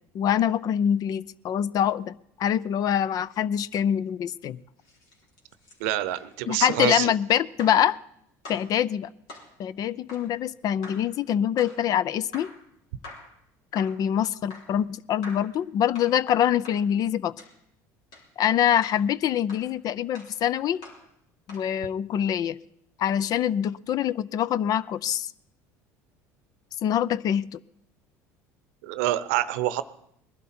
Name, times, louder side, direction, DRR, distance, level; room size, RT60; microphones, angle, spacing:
voice 1, 0.1-4.6 6.5-8.0 8.5-9.1 9.6-12.5 13.7-17.3 18.4-20.8 21.5-22.6 23.0-25.3 26.8-27.6, left 9 dB, 50° left, 20 dB, 0.5 m, -25 dB
sound 1, 4.8-6.9 7.6-7.9 8.4-8.7 9.3-9.5 10.1-10.3 10.8-11.1 11.6-11.8 12.3-12.6 13.0-13.4 13.7-14.0 14.5-14.8 15.2-15.5 15.9-16.2 16.6-16.8 17.4-17.6 18.1-18.3 18.8-19.0 19.5-19.7 20.1-20.4 20.8-21.1 21.5-21.7, left 2 dB, 70° left, 3.7 m, -45 dB
voice 2, 5.8-7.1 28.8-29.8, right 14 dB, 80° right, 15 dB, 0.7 m, -26 dB
20.5 x 12.0 x 4.3 m, 0.75 s
hypercardioid pair, 80°, 8 cm